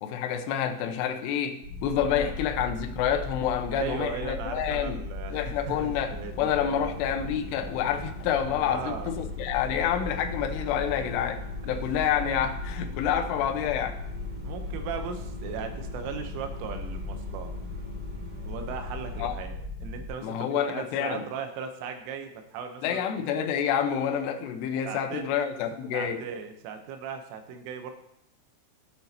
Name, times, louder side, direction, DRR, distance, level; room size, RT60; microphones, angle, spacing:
voice 1, 0.0-5.0 5.3-14.0 19.2-19.4 20.2-21.2 22.8-26.2, left 9 dB, 80° left, 5 dB, 2.5 m, -28 dB
sound 1, 1.6-20.1, left 2 dB, 20° right, 1.3 m, -37 dB
voice 2, 2.0-2.4 3.7-6.8 8.6-9.1 11.7-11.8 14.4-17.5 18.5-19.6 19.8-23.0 24.9-25.3 25.9-27.9, right 6 dB, 85° right, 6 dB, 3.4 m, -38 dB
sound 2, 5.6-19.3, left 1 dB, 60° right, 1.8 m, -45 dB
15.5 x 6.2 x 2.8 m, 0.79 s
omnidirectional pair, 5.5 m